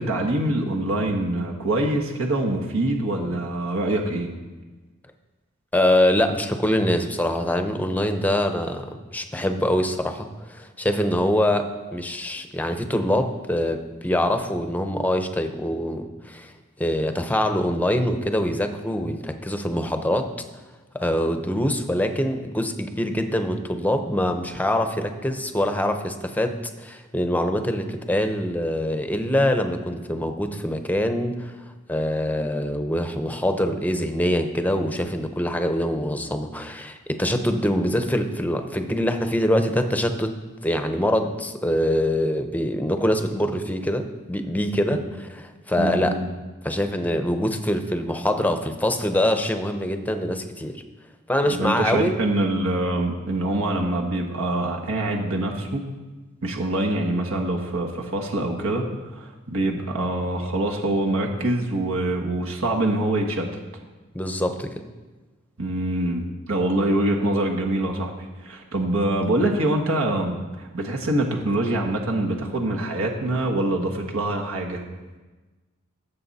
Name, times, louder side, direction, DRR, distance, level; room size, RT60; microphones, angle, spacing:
voice 1, 0.0-4.3 44.9-45.0 45.8-46.3 51.6-55.8 56.4-63.5 65.6-68.1 68.4-74.8, right 1 dB, 70° right, 0 dB, 1.4 m, -24 dB
voice 2, 5.7-16.5 16.8-20.3 20.9-31.6 31.9-40.3 40.6-46.2 46.6-50.8 51.3-52.2 64.1-64.7, left 1 dB, 10° left, 6 dB, 0.8 m, -24 dB
16.5 x 7.4 x 4.2 m, 1.2 s
head